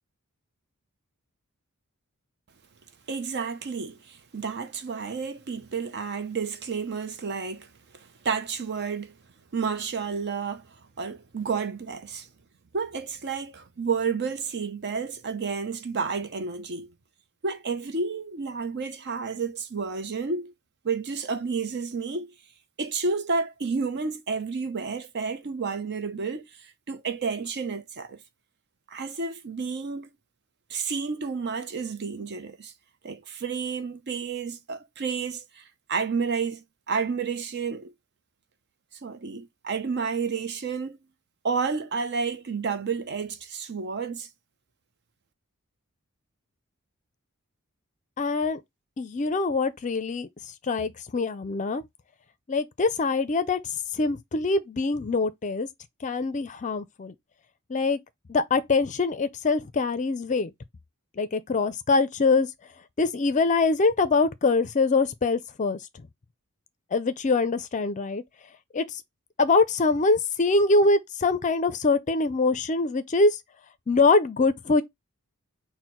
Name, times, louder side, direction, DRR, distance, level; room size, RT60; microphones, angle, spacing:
voice 1, 3.1-9.1 9.5-12.3 12.7-16.9 17.4-20.5 20.8-22.3 22.8-28.2 28.9-30.1 30.7-32.7 33.0-35.6 35.9-37.9 39.0-41.0 41.4-44.3, right 5 dB, 50° right, 0.7 m, -31 dB
voice 2, 48.2-48.6 49.0-50.3 50.7-51.8 52.5-53.6 54.0-55.7 56.0-57.1 57.7-58.0 58.3-60.5 61.2-62.5 63.0-65.8 66.9-68.2 68.7-68.8 69.4-73.4 73.9-74.8, left 3 dB, 35° left, 0.5 m, -23 dB
4.3 x 2.1 x 4.4 m
head